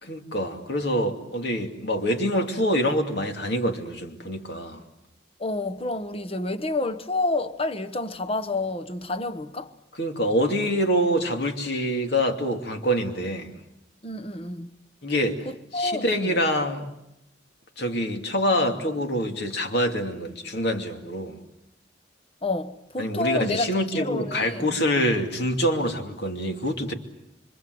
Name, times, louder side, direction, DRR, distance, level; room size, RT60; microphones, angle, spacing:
voice 1, 0.0-4.8 10.0-13.6 15.0-15.4 15.7-16.9 17.8-21.4 23.0-26.9, equal, 60° left, 2.7 m, -25 dB
voice 2, 5.4-9.7 14.0-14.8 15.4-16.4 22.4-24.7, left 2 dB, 30° left, 1.1 m, -29 dB
26.0 x 25.0 x 7.9 m
head